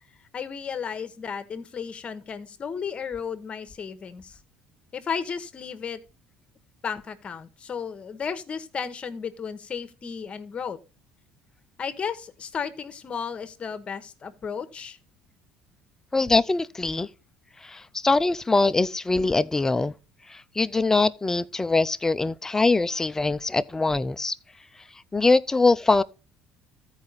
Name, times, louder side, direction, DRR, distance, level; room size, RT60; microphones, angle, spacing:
voice 1, 0.3-4.4 4.9-6.0 6.8-10.8 11.8-15.0, left 6 dB, 35° left, 1.0 m, -34 dB
voice 2, 16.1-17.1 17.7-19.9 20.6-24.3 25.1-26.0, left 3 dB, 15° left, 0.4 m, -22 dB
14.0 x 4.8 x 4.1 m
cardioid pair, 110°, 3 cm